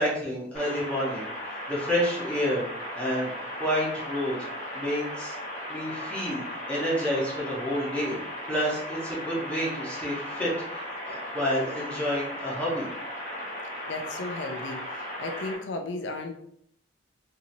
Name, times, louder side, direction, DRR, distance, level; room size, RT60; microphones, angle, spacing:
voice 1, 0.0-2.7 2.9-4.4 4.7-5.3 5.7-8.2 8.5-12.9, equal, 5° left, -6 dB, 0.9 m, -29 dB
sound 1, 0.5-15.5, left 1 dB, 40° left, 0.8 m, -37 dB
voice 2, 13.9-16.4, left 2 dB, 80° left, 4 dB, 0.4 m, -35 dB
2.8 x 2.7 x 2.6 m, 0.68 s
head